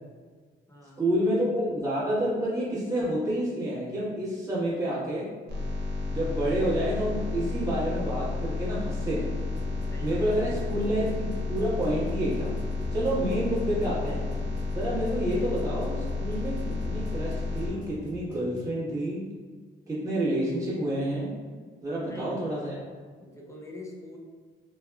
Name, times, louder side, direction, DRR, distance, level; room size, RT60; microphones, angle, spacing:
voice 1, 1.0-5.3 6.0-9.3 10.0-12.6 12.9-14.3 14.7-19.2 19.9-21.3 21.8-22.8, right 1 dB, 15° right, -9 dB, 1.3 m, -29 dB
sound 1, 5.5-17.7, left 3 dB, 55° right, 0.9 m, -31 dB
sound 2, 9.4-18.7, equal, 60° left, 0.9 m, -46 dB
voice 2, 9.9-10.5 22.0-22.3 23.2-24.2, left 2 dB, 15° left, -2 dB, 0.6 m, -45 dB
3.4 x 2.2 x 2.3 m, 1.5 s
cardioid pair, 90°, 20 cm